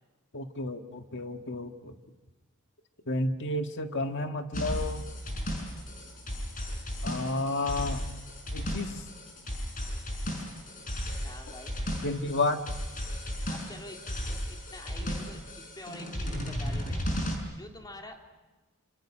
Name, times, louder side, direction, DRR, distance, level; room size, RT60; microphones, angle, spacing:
voice 1, 0.3-1.9 3.1-5.1 7.0-8.0 8.5-9.0 12.0-12.6, left 2 dB, 55° left, 6 dB, 1.7 m, -31 dB
sound 1, 4.5-17.4, equal, 40° left, 5.9 m, -35 dB
voice 2, 11.2-11.8 13.5-17.1 17.5-18.2, left 1 dB, 20° left, 2 dB, 3.2 m, -47 dB
27.0 x 27.0 x 6.3 m, 1.2 s
head